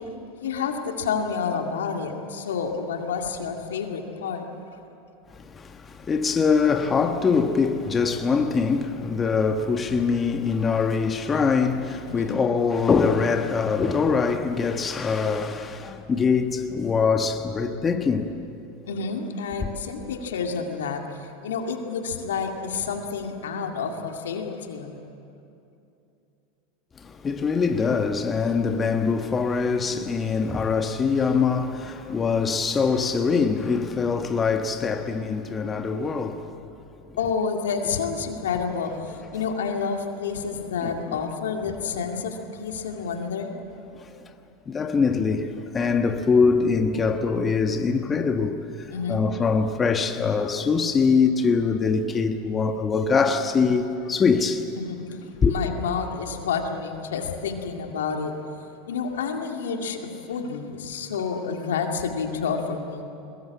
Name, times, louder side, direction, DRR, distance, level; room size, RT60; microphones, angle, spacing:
voice 1, 0.3-4.5 12.0-12.4 18.9-25.0 37.2-43.5 43.9-44.1 48.9-49.2 54.8-55.0 55.3-58.4 58.9-63.0, left 5 dB, 80° left, 2.3 m, -29 dB
voice 2, 5.3-18.4 27.0-36.5 40.8-41.2 44.0-44.1 44.7-54.7 55.4-55.5, left 5 dB, 25° left, 1.3 m, -23 dB
22.0 x 20.5 x 8.5 m
hypercardioid pair, 95°, 0 cm